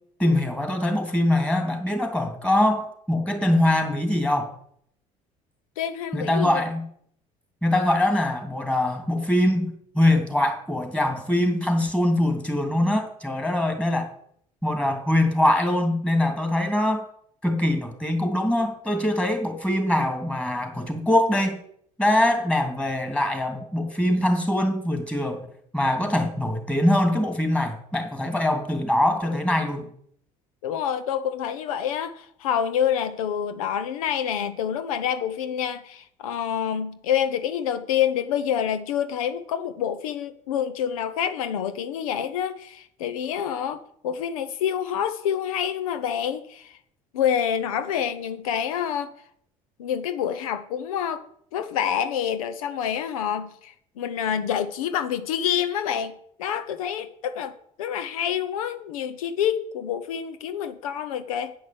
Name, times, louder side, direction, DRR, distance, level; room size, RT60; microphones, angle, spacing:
voice 1, 0.2-4.5 6.1-6.9 7.6-14.1 14.6-17.1 17.4-21.6 22.0-25.5 25.7-29.9, left 1 dB, 5° left, 2.9 m, -23 dB
voice 2, 5.8-6.6 30.6-46.7 47.1-49.1 49.8-51.2 51.5-56.1 56.4-61.5, left 9 dB, 90° left, 0.7 m, -27 dB
9.4 x 6.1 x 7.8 m
hypercardioid pair, 65°, 17 cm